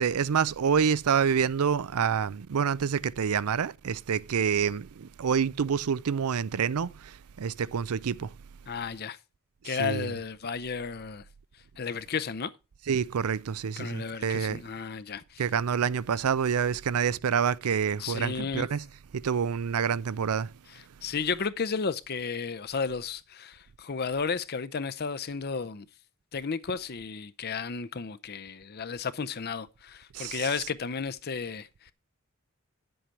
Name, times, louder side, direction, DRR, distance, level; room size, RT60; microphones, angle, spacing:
voice 1, 0.0-6.9 7.4-8.3 9.7-10.1 12.9-14.6 15.4-18.8 19.1-20.5 30.1-30.4, right 7 dB, 80° right, 0.5 m, -27 dB
voice 2, 8.7-9.2 9.6-11.2 11.8-12.5 13.8-15.4 18.0-18.7 20.7-25.9 26.3-31.9, left 5 dB, 45° left, 0.6 m, -33 dB
10.0 x 7.9 x 4.6 m
head